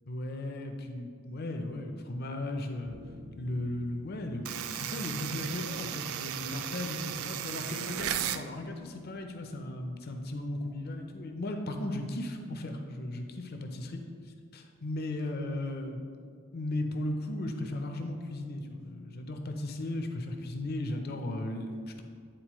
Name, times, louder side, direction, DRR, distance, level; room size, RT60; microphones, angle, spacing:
voice 1, 0.1-3.0 3.4-13.9 14.5-16.1 16.5-22.0, left 1 dB, 45° left, 4 dB, 0.5 m, -36 dB
sound 1, 2.9-13.6, left 1 dB, 55° right, 1.1 m, -57 dB
sound 2, 4.4-8.4, right 10 dB, 85° right, 0.3 m, -35 dB
9.1 x 4.0 x 3.0 m, 2.1 s
head